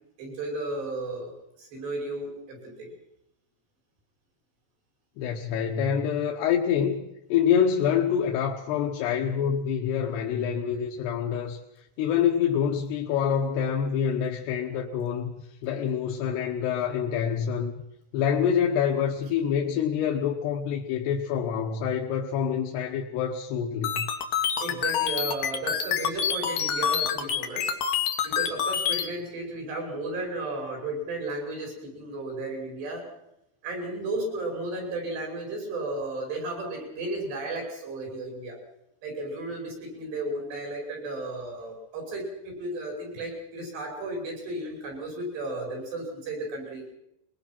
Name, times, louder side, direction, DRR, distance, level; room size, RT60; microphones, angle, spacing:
voice 1, 0.2-1.3 1.6-2.9 24.6-27.7 28.2-33.1 33.6-38.6 39.0-46.9, right 2 dB, 90° right, 1 dB, 8.0 m, -34 dB
voice 2, 5.2-7.0 7.3-11.6 12.0-17.7 18.1-24.0, left 8 dB, 85° left, 1 dB, 3.2 m, -26 dB
sound 1, 23.8-29.0, left 8 dB, 55° left, 2.7 m, -27 dB
22.5 x 21.5 x 6.0 m, 0.84 s
omnidirectional pair, 4.6 m